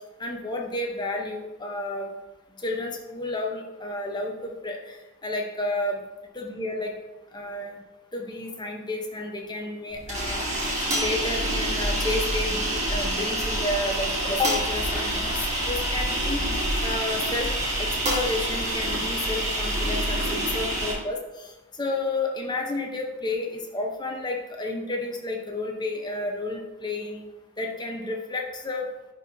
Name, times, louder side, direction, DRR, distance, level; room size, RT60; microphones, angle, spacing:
voice 1, 0.2-2.1 2.6-5.0 5.2-6.0 6.3-6.9 7.3-7.8 8.1-15.2 15.7-16.4 16.8-17.5 17.8-21.5 21.8-27.2 27.6-28.8, left 2 dB, 20° left, 1 dB, 0.8 m, -31 dB
sound 1, 9.9-20.9, right 1 dB, 30° right, 1.8 m, -27 dB
10.5 x 4.5 x 2.7 m, 1.0 s
head